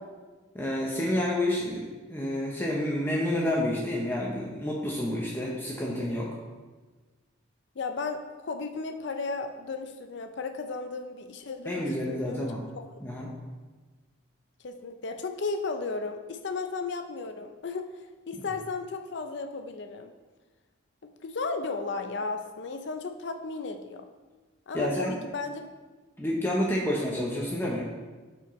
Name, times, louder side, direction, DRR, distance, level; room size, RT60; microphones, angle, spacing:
voice 1, 0.5-6.3 11.7-12.6 13.0-13.3 24.7-25.1 26.2-27.8, left 1 dB, 10° left, -3 dB, 0.7 m, -29 dB
voice 2, 7.8-12.9 13.2-13.3 14.6-20.1 21.2-24.1 24.7-25.7, left 4 dB, 65° left, 6 dB, 0.5 m, -35 dB
12.0 x 4.6 x 3.1 m, 1.3 s
head